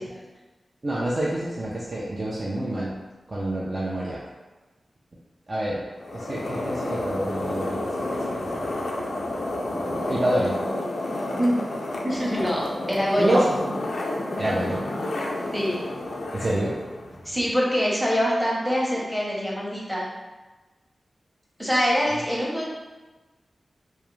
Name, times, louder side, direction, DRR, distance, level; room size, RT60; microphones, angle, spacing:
voice 1, 0.8-2.9 3.3-4.2 5.5-5.8 6.1-8.6 9.7-10.6 13.2-13.4 14.4-14.8 16.3-16.8, right 1 dB, 45° right, -6 dB, 0.4 m, -27 dB
sound 1, 6.0-17.5, left 1 dB, 80° left, 0.3 m, -30 dB
voice 2, 12.0-13.4 15.5-15.8 17.2-20.1 21.6-22.7, equal, ahead, -5 dB, 0.7 m, -24 dB
2.3 x 2.0 x 3.0 m, 1.2 s
cardioid pair, 55°, 0 cm